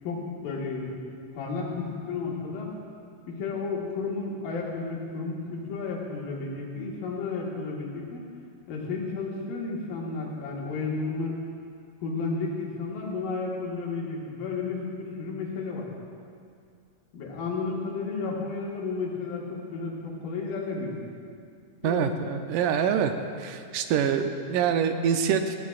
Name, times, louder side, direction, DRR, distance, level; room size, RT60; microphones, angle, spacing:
voice 1, 0.0-1.0 1.3-2.7 3.3-8.3 8.7-11.4 12.0-15.9 17.1-21.0 21.8-22.1, left 4 dB, 90° left, -3 dB, 3.4 m, -32 dB
voice 2, 21.8-23.1 23.4-25.6, right 7 dB, 80° right, 6 dB, 2.1 m, -25 dB
17.0 x 14.5 x 2.4 m, 2.3 s
omnidirectional pair, 3.9 m